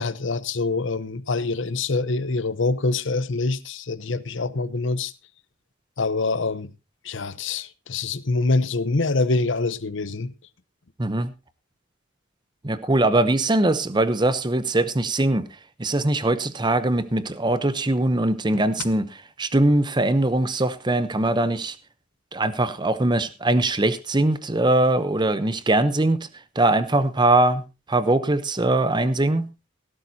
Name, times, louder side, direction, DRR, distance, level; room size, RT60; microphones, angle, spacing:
voice 1, 0.0-5.1 6.0-6.7 7.0-10.3, left 3 dB, 60° left, 0.9 m, -25 dB
voice 2, 11.0-11.3 12.6-15.5 15.8-21.8 22.3-26.3 26.6-27.6 27.9-29.5, right 2 dB, 20° right, 0.8 m, -21 dB
17.5 x 12.5 x 2.8 m
head